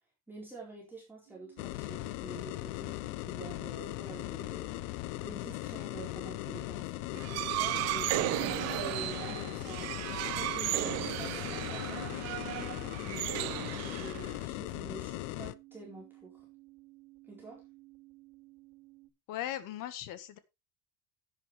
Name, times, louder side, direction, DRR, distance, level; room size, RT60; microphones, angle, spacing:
voice 1, 0.3-3.0 3.2-4.9 5.2-12.0 13.0-16.5 17.3-17.6, right 3 dB, 5° right, 4.3 m, -48 dB
sound 1, 1.3-19.1, right 19 dB, 60° right, 3.5 m, -58 dB
sound 2, 1.6-15.5, left 20 dB, 65° left, 0.7 m, -39 dB
sound 3, 7.2-14.4, right 18 dB, 40° right, 0.5 m, -35 dB
voice 2, 19.3-20.4, left 12 dB, 50° left, 1.6 m, -38 dB
11.0 x 9.6 x 3.3 m
cardioid pair, 155°, 42 cm